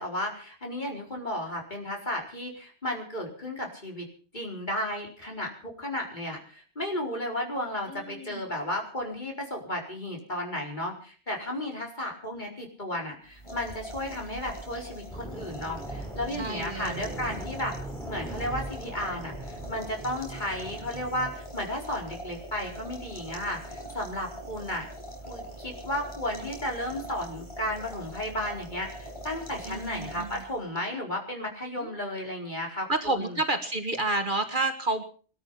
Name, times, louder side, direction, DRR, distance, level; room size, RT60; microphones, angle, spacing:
voice 1, 0.0-4.1 4.3-17.7 18.1-24.9 25.3-33.3, left 1 dB, 40° left, 0 dB, 4.7 m, -34 dB
voice 2, 7.9-8.4 16.3-17.4 29.7-30.4 31.8-32.2 32.9-35.0, right 2 dB, 45° right, 7 dB, 1.7 m, -30 dB
sound 1, 13.3-30.7, equal, 25° left, 4.9 m, -42 dB
sound 2, 15.1-21.3, right 1 dB, ahead, 2.6 m, -40 dB
19.5 x 13.0 x 5.8 m, 0.42 s
omnidirectional pair, 1.2 m